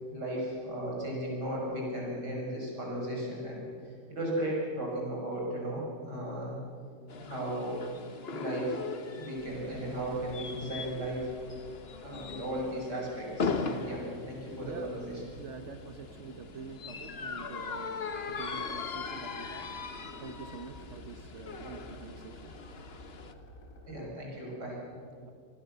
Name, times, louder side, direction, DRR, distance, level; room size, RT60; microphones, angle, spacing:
voice 1, 0.1-3.6 4.1-6.6 7.2-7.8 8.3-8.8 9.2-11.3 12.0-15.2 23.9-24.8, right 1 dB, 65° right, -3 dB, 7.1 m, -35 dB
sound 1, 7.1-23.3, left 4 dB, 40° left, 1.2 m, -40 dB
sound 2, 9.4-24.0, left 1 dB, 55° left, 3.6 m, -52 dB
voice 2, 14.6-15.0 15.3-19.7 20.2-22.5 25.2-25.3, right 5 dB, 45° right, 6 dB, 1.4 m, -46 dB
26.5 x 20.0 x 6.8 m, 2.2 s
omnidirectional pair, 1.9 m